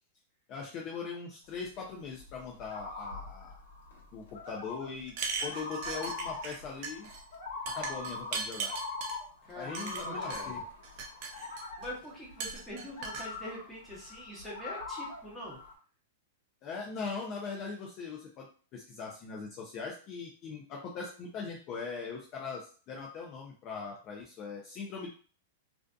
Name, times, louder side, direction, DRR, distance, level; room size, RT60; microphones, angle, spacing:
voice 1, 0.5-3.6 4.1-5.1 5.4-7.1 7.6-8.7 9.5-10.6 16.6-25.1, left 5 dB, 30° left, -1 dB, 0.4 m, -40 dB
sound 1, 1.5-15.7, left 3 dB, 80° left, 1.0 m, -42 dB
sound 2, 5.1-6.6 6.8-7.2 7.7-9.2 9.7-10.4 10.8-11.9 12.4-13.3, right 5 dB, 40° right, 0.5 m, -38 dB
voice 2, 9.4-10.6 11.8-15.6, equal, ahead, -6 dB, 1.0 m, -44 dB
2.5 x 2.4 x 2.3 m, 0.40 s
supercardioid pair, 155°, 0 cm